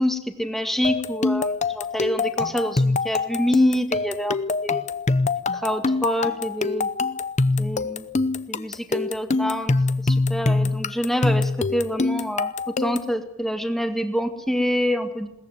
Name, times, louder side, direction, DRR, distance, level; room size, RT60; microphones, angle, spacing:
voice 1, 0.0-4.8 5.5-6.9 7.6-8.1 8.5-9.7 10.0-15.3, equal, ahead, 7 dB, 1.7 m, -26 dB
sound 1, 0.8-13.2, left 3 dB, 35° left, 0.8 m, -24 dB
21.0 x 19.0 x 9.1 m, 0.86 s
head